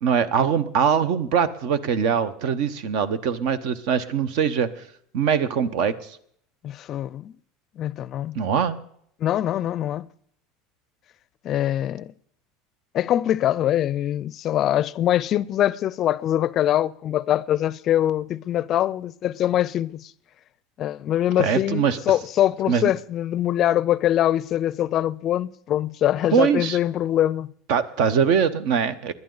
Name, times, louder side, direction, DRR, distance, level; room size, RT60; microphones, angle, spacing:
voice 1, 0.0-4.7 5.1-5.9 8.3-8.8 21.4-22.0 22.7-22.9 26.3-26.8 27.7-29.1, right 7 dB, 70° right, 1.0 m, -22 dB
voice 2, 6.6-7.3 7.8-8.4 9.2-10.1 11.4-12.1 12.9-20.1 20.8-27.5, left 12 dB, 45° left, 0.4 m, -23 dB
20.5 x 11.0 x 4.0 m
supercardioid pair, 120°, 0 cm